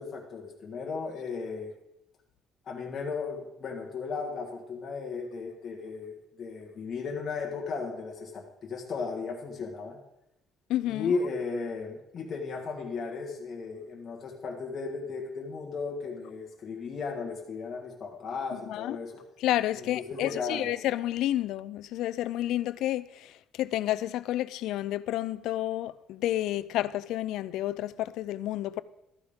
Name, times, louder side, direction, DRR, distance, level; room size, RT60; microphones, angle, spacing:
voice 1, 0.0-1.7 2.6-10.0 10.9-19.2 19.8-20.6, left 4 dB, 30° left, 1.6 m, -35 dB
voice 2, 10.7-11.1 18.5-19.0 19.4-28.8, left 14 dB, 70° left, 0.4 m, -30 dB
13.0 x 9.5 x 3.7 m
cardioid pair, 180°, 0 cm